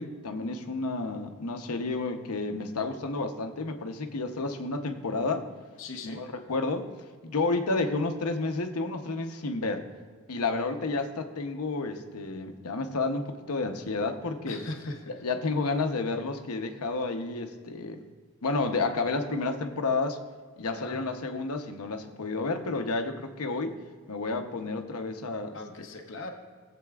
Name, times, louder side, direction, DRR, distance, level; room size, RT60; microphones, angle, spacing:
voice 1, 0.0-5.5 6.0-6.9 7.2-9.9 10.3-14.6 15.2-18.0 18.4-20.2 20.6-23.8 24.1-25.6, left 3 dB, 90° left, 6 dB, 0.8 m, -31 dB
voice 2, 5.8-6.2 14.5-15.2 20.6-21.0 25.5-26.3, left 2 dB, 55° left, 3 dB, 0.8 m, -39 dB
17.5 x 7.7 x 2.4 m, 1.5 s
head